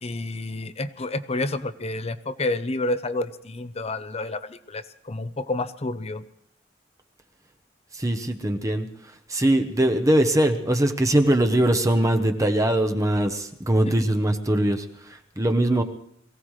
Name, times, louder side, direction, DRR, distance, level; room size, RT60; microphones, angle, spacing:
voice 1, 0.0-6.2 13.8-13.9, left 2 dB, 35° left, 12 dB, 0.7 m, -29 dB
voice 2, 7.9-8.9 9.3-15.8, right 1 dB, 20° right, 5 dB, 0.9 m, -22 dB
22.5 x 16.0 x 3.2 m, 0.72 s
head